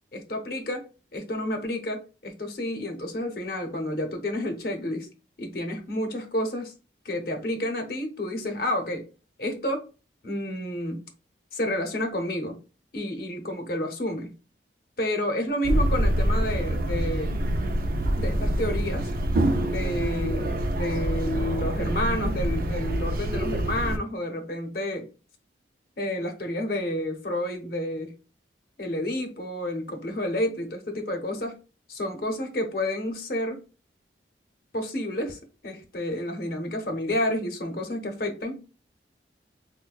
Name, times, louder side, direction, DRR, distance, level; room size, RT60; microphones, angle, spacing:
voice 1, 0.1-5.1 5.4-6.7 7.0-9.0 9.4-9.8 10.2-11.1 11.5-12.6 12.9-14.3 15.0-17.4 18.2-19.1 19.6-25.1 26.0-28.2 28.8-31.6 31.9-33.6 34.7-38.6, left 1 dB, 55° left, 0.7 m, -30 dB
sound 1, 15.6-24.0, right 1 dB, 50° right, 0.4 m, -26 dB
4.0 x 2.1 x 2.3 m
head